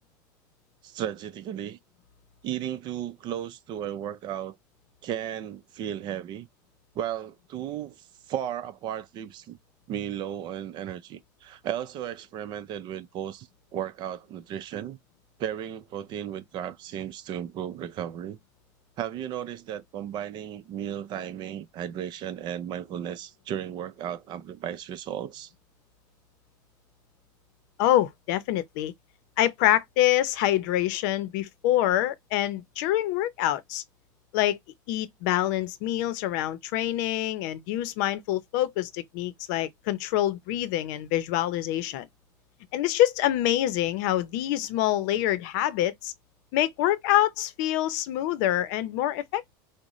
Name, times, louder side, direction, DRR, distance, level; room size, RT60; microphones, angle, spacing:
voice 1, 0.8-1.8 2.4-4.6 5.0-6.5 7.0-9.6 9.9-15.0 15.4-18.4 19.0-25.5, right 10 dB, 50° right, 0.6 m, -35 dB
voice 2, 27.8-28.9 29.4-33.8 34.3-34.6 34.9-42.1 42.7-46.1 46.5-49.5, left 13 dB, 75° left, 0.6 m, -26 dB
6.2 x 2.1 x 3.0 m
supercardioid pair, 125°, 10 cm